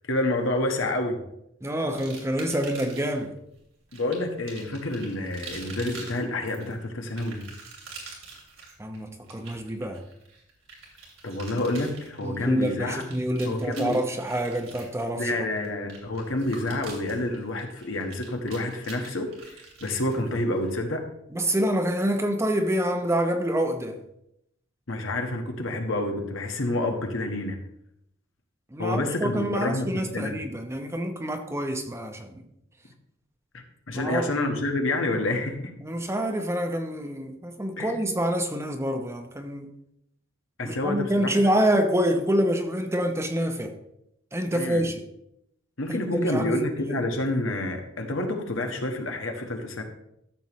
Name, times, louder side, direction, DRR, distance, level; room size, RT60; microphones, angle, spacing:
voice 1, 0.1-1.2 3.9-7.4 11.2-13.0 13.4-14.0 15.1-19.3 19.8-21.0 24.9-27.6 28.8-30.4 33.5-35.6 37.8-38.0 40.6-41.4 44.5-44.8 45.8-49.8, left 2 dB, 70° left, 3 dB, 1.5 m, -28 dB
voice 2, 1.6-3.3 8.8-10.0 12.2-15.4 21.3-24.0 28.7-32.5 33.9-34.3 35.8-39.7 40.6-43.7 44.3-45.0 45.9-46.6 46.9-47.0, right 1 dB, 15° right, 5 dB, 0.8 m, -27 dB
sound 1, 1.9-3.2 3.9-20.8, right 4 dB, 90° right, 2.9 m, -46 dB
13.5 x 6.9 x 3.1 m, 0.79 s
head